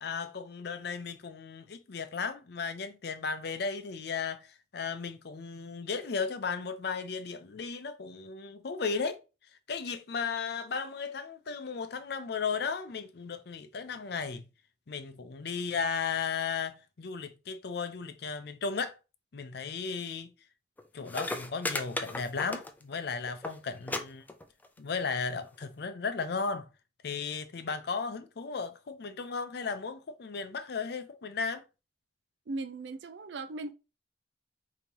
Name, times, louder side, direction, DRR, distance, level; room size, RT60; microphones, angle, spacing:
voice 1, 0.0-9.2 9.7-14.4 14.9-19.0 19.3-20.3 20.9-24.3 24.8-26.7 27.0-31.6, left 5 dB, 65° left, 0.5 m, -35 dB
sound 1, 20.8-20.9 21.1-23.0 23.3-23.5 23.9-24.0 24.3-24.8 25.6-25.7, left 2 dB, 10° left, 0.4 m, -35 dB
voice 2, 32.5-33.7, right 3 dB, 90° right, 0.5 m, -38 dB
5.2 x 2.9 x 2.9 m
head